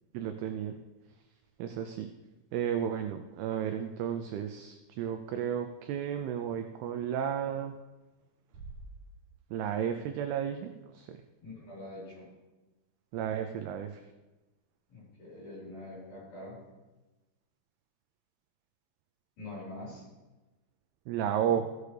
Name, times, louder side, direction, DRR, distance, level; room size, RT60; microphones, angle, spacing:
voice 1, 0.1-0.8 1.6-2.1 2.5-7.8 9.5-11.2 13.1-14.0 21.1-21.6, right 9 dB, 85° right, 7 dB, 2.3 m, -33 dB
Bass drum, 8.5-10.0, right 2 dB, 55° right, 3.0 m, -48 dB
voice 2, 11.4-12.3 14.9-16.6 19.4-20.1 21.5-21.6, left 2 dB, 55° left, -6 dB, 5.6 m, -44 dB
15.0 x 8.1 x 3.3 m, 1.1 s
omnidirectional pair, 5.1 m